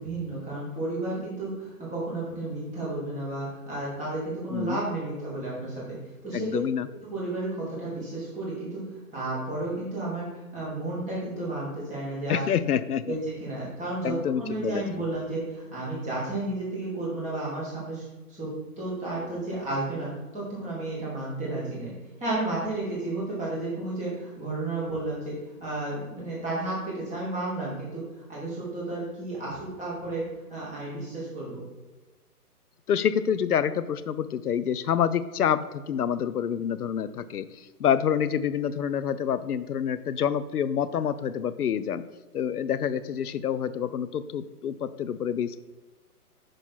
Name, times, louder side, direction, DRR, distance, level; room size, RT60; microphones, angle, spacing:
voice 1, 0.0-6.0 6.2-6.5 7.0-8.8 9.1-12.4 13.1-18.5 18.8-21.9 22.2-25.3 25.6-30.2 30.5-31.6, right 2 dB, ahead, -20 dB, 0.4 m, -32 dB
voice 2, 6.3-6.9 12.3-13.2 14.0-15.0 32.9-42.1 42.3-45.6, left 8 dB, 75° left, 14 dB, 0.6 m, -27 dB
6.3 x 4.6 x 4.2 m, 1.2 s
figure-of-eight pair, 130°, 46 cm